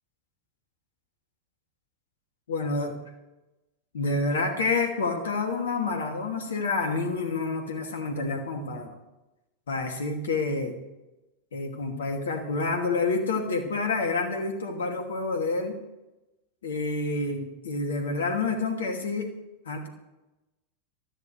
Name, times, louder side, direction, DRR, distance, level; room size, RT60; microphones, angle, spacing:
voice 1, 2.5-3.0 3.9-9.0 9.7-10.8 11.5-15.8 16.6-19.3 19.7-19.9, left 3 dB, 65° left, 4 dB, 2.6 m, -28 dB
20.0 x 14.0 x 3.4 m, 1.0 s
figure-of-eight pair, 90°, 0 cm